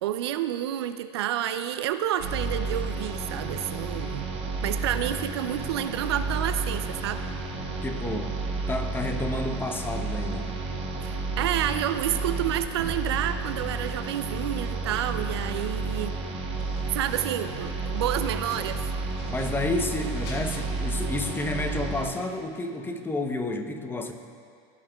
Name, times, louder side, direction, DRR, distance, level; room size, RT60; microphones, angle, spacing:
voice 1, 0.0-4.3 4.6-7.3 11.0-16.2 16.9-18.9, right 11 dB, 90° right, 10 dB, 0.4 m, -29 dB
sound 1, 2.2-22.0, right 3 dB, 55° right, 1.3 m, -31 dB
voice 2, 7.8-8.4 8.7-10.6 19.3-24.1, left 2 dB, 15° left, 6 dB, 0.7 m, -30 dB
sound 2, 16.6-17.6 17.9-18.7 19.1-20.6, left 2 dB, 75° left, 1.7 m, -48 dB
15.0 x 5.6 x 2.3 m, 2.3 s
supercardioid pair, 95°, 13 cm